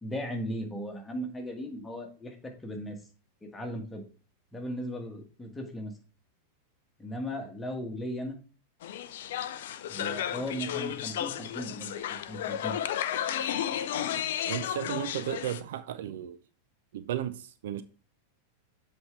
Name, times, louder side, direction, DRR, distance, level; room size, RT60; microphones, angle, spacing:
voice 1, 0.0-3.0 3.4-4.0 4.5-5.9 7.0-8.4 9.9-12.0 12.3-12.7, equal, 10° left, 1.4 m, -37 dB
sound 1, 8.8-15.6, left 10 dB, 55° left, 0.4 m, -33 dB
voice 2, 14.5-16.4 16.9-17.8, right 11 dB, 55° right, 0.4 m, -34 dB
7.9 x 4.5 x 3.3 m
figure-of-eight pair, 90°, 0 cm